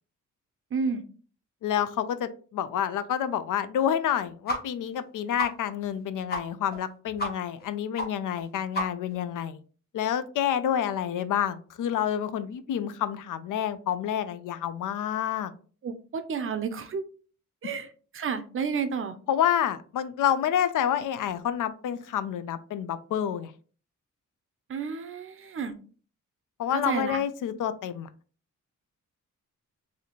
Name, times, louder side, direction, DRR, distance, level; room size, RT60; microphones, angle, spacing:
voice 1, 0.7-1.0 15.8-17.0 17.6-19.1 24.7-25.8 26.7-27.2, right 5 dB, 45° right, 10 dB, 0.5 m, -31 dB
voice 2, 1.6-9.6 9.9-15.5 19.3-23.5 26.6-28.1, left 9 dB, 90° left, 13 dB, 0.5 m, -28 dB
sound 1, 4.5-4.6 4.9-5.0 5.4-5.5 5.9-6.0 6.3-6.4 6.7-6.8 7.2-7.3 7.6-7.7 8.0-8.1 8.4-8.5 8.7-9.1, equal, 30° left, 0.9 m, -30 dB
4.1 x 2.7 x 2.9 m, 0.40 s
wide cardioid pair, 155°, 31 cm